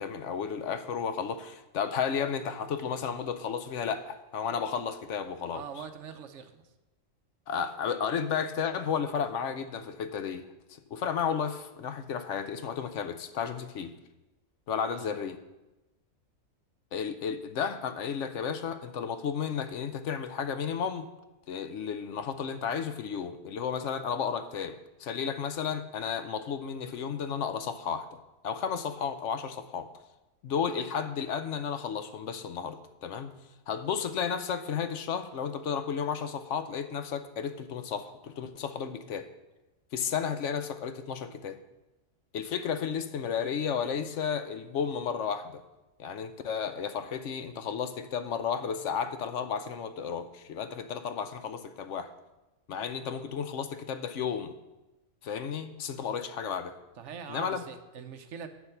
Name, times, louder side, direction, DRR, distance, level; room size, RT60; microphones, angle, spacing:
voice 1, 0.0-5.6 7.5-10.5 10.9-13.9 14.7-15.4 16.9-21.1 21.5-28.1 28.4-29.9 30.4-33.3 33.7-39.3 39.9-41.6 42.3-45.6 46.0-52.1 52.7-54.5 55.2-56.7 57.3-57.6, left 7 dB, 70° left, 10 dB, 0.9 m, -33 dB
voice 2, 5.5-6.6 14.9-15.2 57.0-58.5, right 7 dB, 70° right, 8 dB, 1.0 m, -43 dB
8.6 x 7.0 x 5.7 m, 1.0 s
omnidirectional pair, 1.4 m